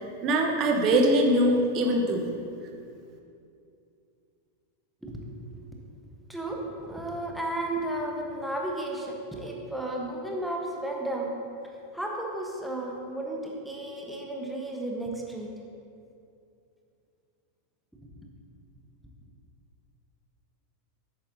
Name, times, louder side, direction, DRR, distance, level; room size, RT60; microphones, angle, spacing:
voice 1, 0.2-2.3, right 1 dB, 35° right, 2 dB, 1.1 m, -22 dB
voice 2, 5.0-5.6 6.3-11.3 11.9-15.5, right 1 dB, ahead, -1 dB, 1.1 m, -33 dB
10.5 x 8.7 x 2.8 m, 2.5 s
figure-of-eight pair, 90°, 0 cm